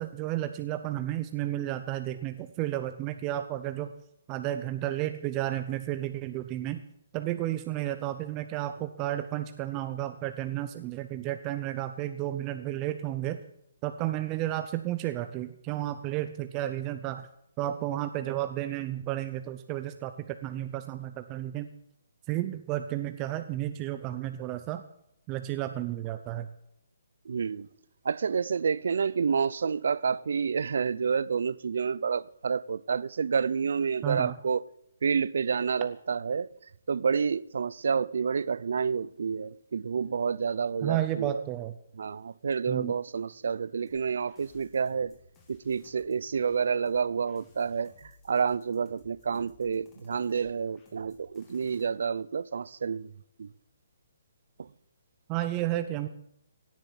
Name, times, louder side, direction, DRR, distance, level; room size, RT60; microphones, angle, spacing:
voice 1, 0.0-3.9 4.3-6.8 7.1-13.4 13.8-17.3 17.6-21.7 22.3-24.8 25.3-26.5 34.0-34.4 40.8-41.7 42.7-42.9 55.3-56.1, right 13 dB, 20° right, 0.6 m, -32 dB
voice 2, 27.3-27.7 28.0-34.6 35.0-36.5 36.9-41.4 42.0-45.1 45.5-53.1 53.4-53.5 54.6-54.7, right 6 dB, 70° right, 0.6 m, -29 dB
sound 1, 43.9-51.8, left 4 dB, 15° left, 3.2 m, -60 dB
17.0 x 7.5 x 9.3 m
hypercardioid pair, 160°, 0 cm